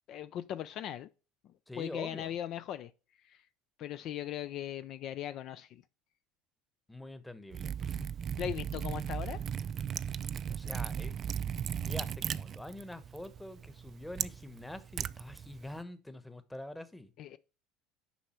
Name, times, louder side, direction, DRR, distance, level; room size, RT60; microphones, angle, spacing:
voice 1, 0.1-1.1 1.8-2.9 3.2-3.4 3.8-5.8 8.4-9.4 17.2-17.4, left 11 dB, 55° left, 0.5 m, -39 dB
voice 2, 1.7-2.3 6.9-8.1 10.5-17.1, left 1 dB, 5° left, 1.1 m, -45 dB
Liquid, 7.5-15.8, right 8 dB, 45° right, 0.4 m, -37 dB
7.1 x 5.5 x 4.4 m
hypercardioid pair, 85°, 0 cm